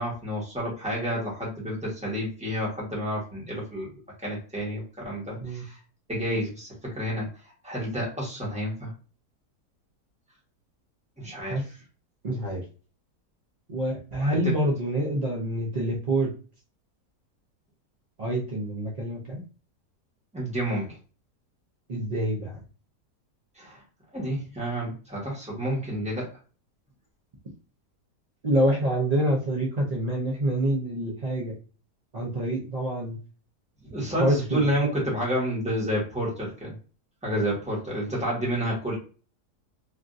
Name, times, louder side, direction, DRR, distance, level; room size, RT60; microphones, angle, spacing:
voice 1, 0.0-3.9 4.2-5.8 6.1-7.3 7.6-8.9 11.2-11.7 14.2-14.5 20.3-21.0 23.6-23.8 24.1-26.3 33.9-36.7 37.2-38.9, equal, 5° right, -5 dB, 1.0 m, -30 dB
voice 2, 12.2-12.6 13.7-16.3 18.2-19.4 21.9-22.6 28.4-31.5 32.1-33.2 34.2-34.6, right 1 dB, 75° right, -3 dB, 0.3 m, -26 dB
3.4 x 2.5 x 2.5 m, 0.36 s
omnidirectional pair, 1.7 m